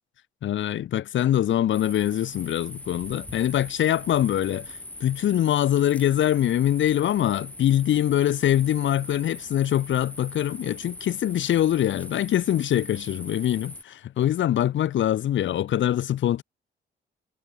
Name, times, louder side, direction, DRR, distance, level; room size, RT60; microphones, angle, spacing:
voice 1, 0.4-16.4, left 11 dB, 70° left, 3.5 m, -23 dB
sound 1, 1.7-13.8, left 1 dB, 5° left, 4.0 m, -41 dB
cardioid pair, 90°, 20 cm